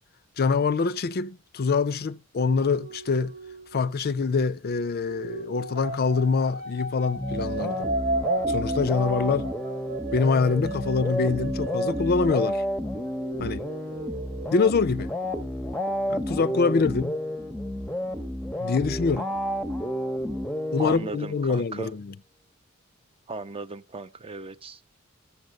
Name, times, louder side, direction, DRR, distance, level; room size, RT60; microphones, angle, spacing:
voice 1, 0.4-3.3 3.7-8.0 8.5-9.5 10.1-12.6 13.4-13.6 14.5-15.1 16.1-17.2 18.6-19.3 20.7-22.1, left 4 dB, 45° left, 0.5 m, -25 dB
sound 1, 2.4-4.4 5.0-12.8 13.1-14.5, right 2 dB, 50° right, 1.1 m, -34 dB
sound 2, 7.2-21.5, equal, 5° left, 0.8 m, -31 dB
voice 2, 20.8-21.9 23.3-25.0, right 3 dB, 25° right, 0.6 m, -37 dB
13.0 x 7.2 x 6.3 m
head